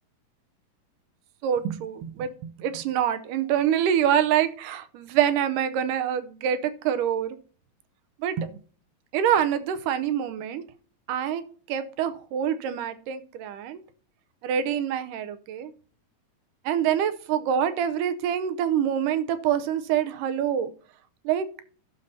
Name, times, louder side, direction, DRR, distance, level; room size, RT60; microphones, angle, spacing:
voice 1, 1.4-7.4 8.2-8.5 9.1-10.6 11.1-11.4 11.7-13.8 14.4-15.7 16.7-20.7 21.3-21.5, right 9 dB, 90° right, 10 dB, 2.3 m, -26 dB
15.0 x 6.5 x 2.7 m, 0.43 s
omnidirectional pair, 3.6 m